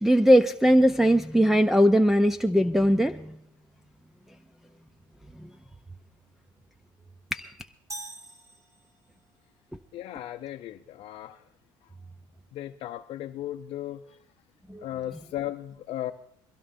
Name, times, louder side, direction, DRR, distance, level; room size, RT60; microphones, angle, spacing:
voice 1, 0.0-3.3 7.3-7.5 14.7-14.8, equal, 5° right, 3 dB, 0.5 m, -20 dB
sound 1, 7.9-9.3, right 1 dB, 30° right, 2.5 m, -43 dB
voice 2, 9.9-11.4 12.5-14.0 14.8-16.1, left 13 dB, 60° left, 4 dB, 0.6 m, -36 dB
22.0 x 16.5 x 2.6 m, 0.71 s
cardioid pair, 105°, 11 cm